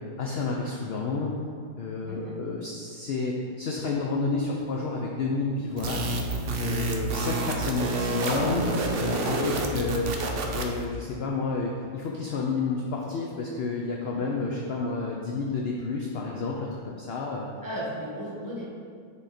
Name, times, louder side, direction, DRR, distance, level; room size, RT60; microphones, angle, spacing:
voice 1, 0.2-1.3 1.8-6.0 6.6-8.6 9.0-10.1 10.5-17.4, left 3 dB, 65° left, -1 dB, 0.6 m, -30 dB
voice 2, 2.1-2.4 8.1-8.6 14.1-14.3 17.6-18.6, equal, 15° right, -6 dB, 1.4 m, -36 dB
sound 1, 5.8-10.9, right 2 dB, 65° right, 0.6 m, -29 dB
6.3 x 3.7 x 4.2 m, 2.2 s
omnidirectional pair, 1.6 m